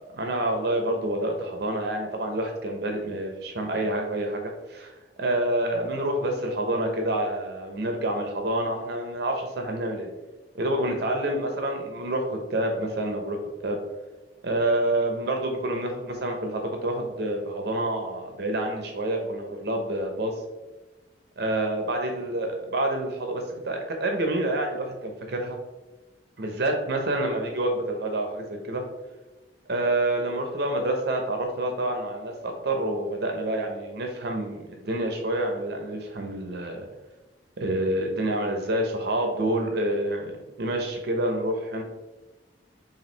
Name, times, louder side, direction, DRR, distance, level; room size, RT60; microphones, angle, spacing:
voice 1, 0.2-4.9 5.2-10.1 10.5-13.8 14.4-20.3 21.4-25.6 26.4-28.8 29.7-36.9 37.6-40.3 40.6-41.8, right 1 dB, 65° right, 3 dB, 0.8 m, -28 dB
5.8 x 2.5 x 3.3 m, 1.1 s
head